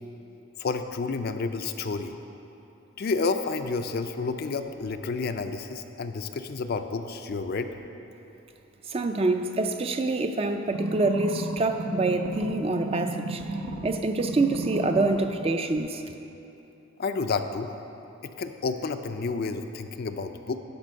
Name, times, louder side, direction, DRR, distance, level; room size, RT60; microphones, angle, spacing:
voice 1, 0.6-2.2 3.0-7.7 17.0-17.8 18.2-20.6, left 4 dB, 50° left, 8 dB, 0.4 m, -30 dB
voice 2, 8.9-13.4 13.8-16.0, right 2 dB, 30° right, 6 dB, 0.4 m, -26 dB
sound 1, 10.7-13.9 14.2-15.2 15.8-15.9, right 1 dB, 80° right, 0.8 m, -33 dB
10.5 x 5.3 x 6.3 m, 2.9 s
head